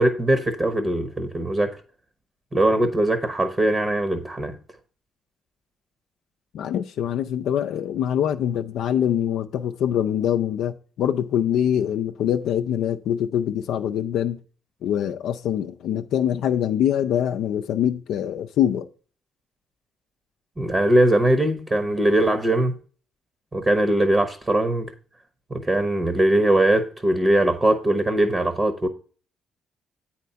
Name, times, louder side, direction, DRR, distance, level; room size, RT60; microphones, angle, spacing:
voice 1, 0.0-1.8 2.5-4.5 20.6-22.7 23.5-24.9 25.5-28.9, right 1 dB, 25° right, 1.0 m, -21 dB
voice 2, 6.5-14.4 14.8-18.9, left 10 dB, 80° left, 0.4 m, -24 dB
8.4 x 4.3 x 5.5 m
cardioid pair, 90°, 0 cm